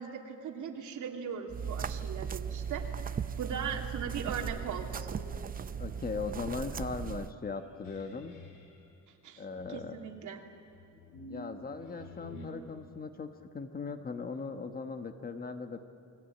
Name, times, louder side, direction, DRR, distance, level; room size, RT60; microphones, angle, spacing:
voice 1, 0.0-2.9 3.4-5.2 9.2-10.4, right 7 dB, 65° right, 2 dB, 3.2 m, -39 dB
footsteps on soft floor bip, 1.5-7.3, right 7 dB, 25° right, 0.6 m, -37 dB
sound 1, 4.2-8.9 9.6-12.5, left 3 dB, 70° left, 4.3 m, -51 dB
voice 2, 5.8-8.3 9.4-10.0 11.3-13.3 13.5-15.8, left 4 dB, 30° left, 7 dB, 1.3 m, -38 dB
29.5 x 22.0 x 9.2 m, 2.7 s
cardioid pair, 170°, 32 cm